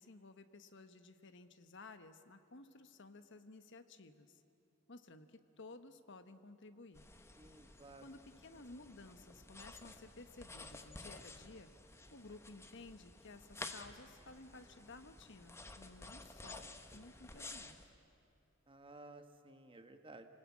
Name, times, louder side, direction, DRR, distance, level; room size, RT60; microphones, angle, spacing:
voice 1, 0.0-4.4 4.9-7.1 8.0-11.7 12.1-17.9, left 3 dB, 60° left, 9 dB, 1.2 m, -55 dB
sound 1, 6.9-17.8, left 2 dB, 15° left, 1.1 m, -53 dB
voice 2, 7.4-8.0 18.7-20.3, right 2 dB, 25° right, 7 dB, 1.4 m, -55 dB
28.5 x 19.5 x 8.5 m, 2.9 s
head